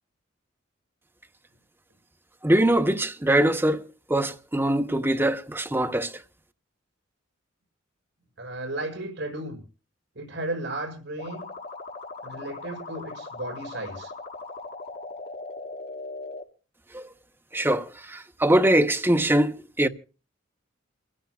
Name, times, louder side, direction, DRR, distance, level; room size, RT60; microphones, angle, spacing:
voice 1, 2.4-6.1 16.9-17.0 17.5-19.9, right 1 dB, 10° right, 0.9 m, -23 dB
voice 2, 8.4-9.6 10.2-11.5 12.2-14.1, right 1 dB, 65° right, 6.8 m, -34 dB
sound 1, 11.2-16.4, left 3 dB, 55° left, 3.3 m, -39 dB
28.5 x 16.5 x 2.4 m
head